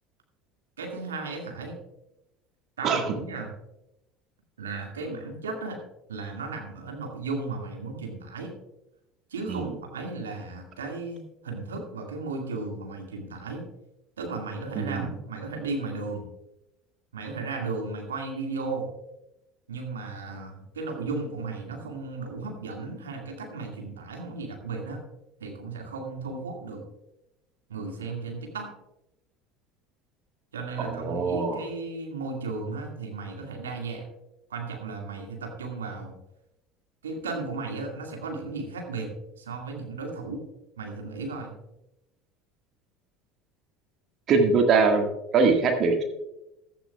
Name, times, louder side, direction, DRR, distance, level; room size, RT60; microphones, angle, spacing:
voice 1, 0.8-1.8 2.8-3.5 4.6-5.8 6.1-8.5 9.3-13.6 14.2-16.2 17.1-18.9 19.7-25.0 25.4-26.8 27.7-28.7 30.5-34.1 34.5-36.1 37.0-39.1 39.4-40.4 40.8-41.5, right 3 dB, 80° right, 2 dB, 2.1 m, -35 dB
voice 2, 14.7-15.1 30.8-31.6 44.3-45.1 45.3-46.0, right 4 dB, 45° right, 3 dB, 1.7 m, -22 dB
15.0 x 12.0 x 2.3 m, 0.91 s
figure-of-eight pair, 70°, 0 cm